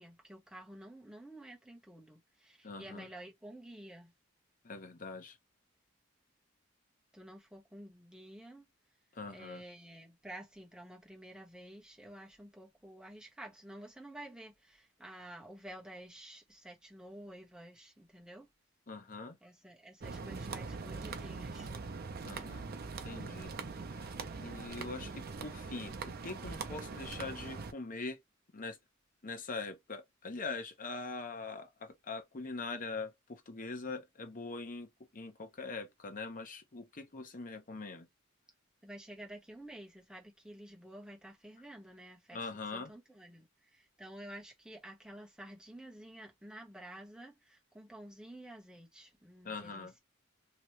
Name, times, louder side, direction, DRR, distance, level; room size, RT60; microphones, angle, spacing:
voice 1, 0.0-4.1 7.1-8.7 9.3-18.5 19.4-21.7 38.8-50.0, right 1 dB, 5° right, 1.0 m, -51 dB
voice 2, 2.6-3.1 4.6-5.4 9.1-9.6 18.9-19.4 22.2-22.7 23.0-23.5 23.9-28.2 28.5-28.8 29.2-38.1 42.3-42.9 49.4-49.9, left 3 dB, 40° left, 0.8 m, -43 dB
sound 1, 20.0-27.7, right 4 dB, 50° right, 0.6 m, -42 dB
3.0 x 2.9 x 3.1 m
head